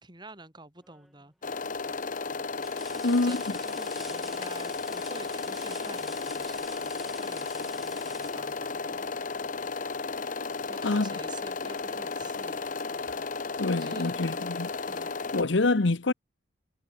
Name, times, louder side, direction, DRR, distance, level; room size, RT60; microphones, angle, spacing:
voice 1, 0.0-1.7 2.9-9.0 10.6-12.6 13.7-14.5 14.8-15.1, right 2 dB, 25° right, 4.9 m, -48 dB
sound 1, 0.8-1.3 1.9-2.0 2.6-9.3 11.0-11.2 11.6-12.7 14.0-14.1, equal, ahead, 2.8 m, -49 dB
sound 2, 1.4-15.4, left 4 dB, 45° left, 0.9 m, -34 dB
voice 2, 3.0-3.4 10.8-11.1 13.6-14.7 15.3-16.1, left 2 dB, 75° left, 1.0 m, -25 dB
head